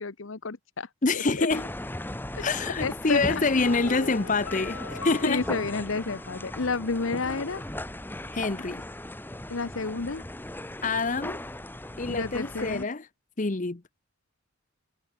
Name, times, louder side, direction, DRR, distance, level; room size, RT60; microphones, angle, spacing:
voice 1, 0.0-0.9 1.1-1.5 2.3-2.4 2.8-3.2 5.2-7.6 9.5-10.3 12.1-12.9, left 4 dB, 65° left, 0.9 m, -30 dB
voice 2, 1.0-1.7 2.4-5.4 8.3-8.8 10.8-11.4 12.0-13.1 13.4-13.8, left 3 dB, 35° left, 0.8 m, -26 dB
sound 1, 1.5-12.8, left 1 dB, 10° left, 1.2 m, -38 dB
Piano, 3.1-6.9 7.2-7.3, left 4 dB, 90° left, 2.0 m, -40 dB
head